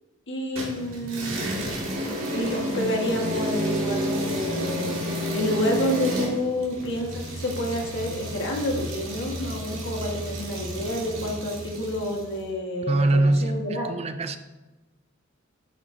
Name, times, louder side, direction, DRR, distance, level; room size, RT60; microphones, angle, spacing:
voice 1, 0.3-1.7 2.3-5.0 5.3-13.9, left 1 dB, 60° left, 0 dB, 1.6 m, -29 dB
sound 1, 0.6-12.3, equal, 75° right, 2.2 m, -31 dB
voice 2, 12.9-14.4, right 2 dB, 30° right, 9 dB, 0.4 m, -23 dB
10.5 x 7.9 x 2.7 m, 1.1 s
head